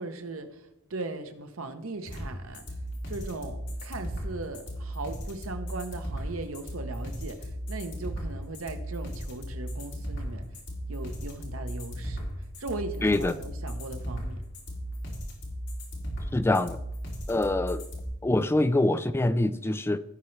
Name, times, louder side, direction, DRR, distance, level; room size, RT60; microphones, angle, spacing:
voice 1, 0.0-2.8 3.1-10.5 10.9-14.4, right 2 dB, 80° right, 7 dB, 1.0 m, -38 dB
sound 1, 2.0-18.0, equal, 60° left, 2.8 m, -36 dB
voice 2, 13.0-13.3 16.3-16.8 17.3-17.8 18.2-20.0, left 2 dB, 10° left, 12 dB, 0.3 m, -24 dB
16.5 x 5.7 x 3.3 m, 0.84 s
head